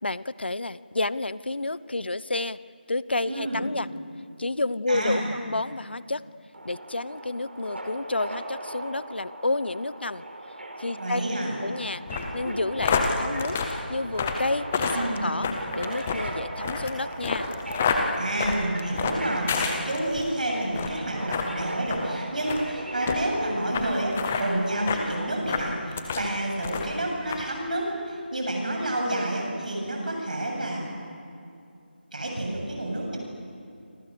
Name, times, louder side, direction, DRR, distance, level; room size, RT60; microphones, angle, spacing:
voice 1, 0.0-2.6 2.9-3.9 4.4-6.2 6.6-10.2 10.8-11.2 11.6-12.0 12.3-13.6 13.9-15.5 15.7-17.5, left 2 dB, 75° left, 17 dB, 0.9 m, -30 dB
voice 2, 3.3-3.7 4.9-5.3 10.9-11.6 14.9-15.4 18.2-30.8 32.1-33.2, right 1 dB, 50° right, 0 dB, 7.7 m, -29 dB
Subway metro underground, 6.5-25.3, right 1 dB, 90° right, 5.5 m, -38 dB
sound 1, 12.1-20.3 20.7-21.0 21.3-21.5 21.9-22.0 22.5-22.6 23.1-23.2 23.7-23.8 24.1-24.4 24.9-25.0 25.5-26.3 26.6-27.0 27.3-27.4, left 5 dB, 5° left, 0.5 m, -28 dB
28.0 x 27.0 x 6.8 m, 2.5 s
figure-of-eight pair, 180°, 6 cm